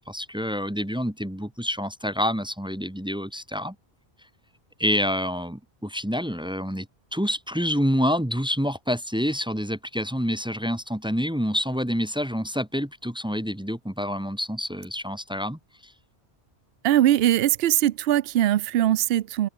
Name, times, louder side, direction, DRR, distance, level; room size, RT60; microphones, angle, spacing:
voice 1, 0.0-3.7 4.8-6.9 7.1-15.9, equal, 5° right, 0.9 m, -27 dB
voice 2, 16.8-19.5, right 13 dB, 70° right, 0.8 m, -21 dB
omnidirectional pair, 1.1 m